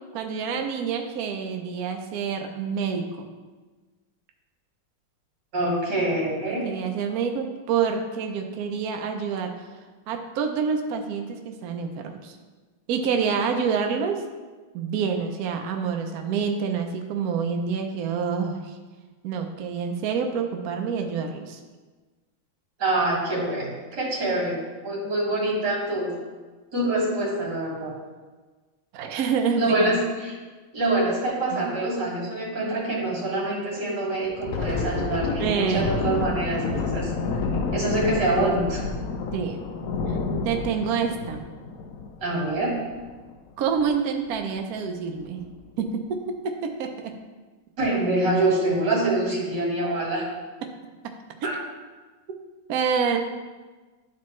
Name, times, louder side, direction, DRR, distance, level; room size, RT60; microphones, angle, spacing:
voice 1, 0.1-3.3 6.5-9.5 10.1-12.3 12.9-14.2 14.7-18.8 19.2-21.6 28.9-29.9 31.5-31.6 35.4-36.1 39.3-39.6 40.1-40.2 40.4-41.4 43.6-45.4 45.8-47.1 52.7-53.2, right 6 dB, 75° right, 4 dB, 0.8 m, -27 dB
voice 2, 5.5-6.6 22.8-26.1 26.7-27.9 29.6-30.0 30.2-30.3 30.7-37.1 37.7-38.8 42.2-42.7 47.8-50.2 51.4-51.5, right 2 dB, 55° right, -5 dB, 2.7 m, -25 dB
Thunder, 34.3-43.3 43.7-43.9 44.3-44.5 45.1-45.6, left 4 dB, 75° left, 0.8 m, -29 dB
11.5 x 4.3 x 3.1 m, 1.3 s
omnidirectional pair, 2.3 m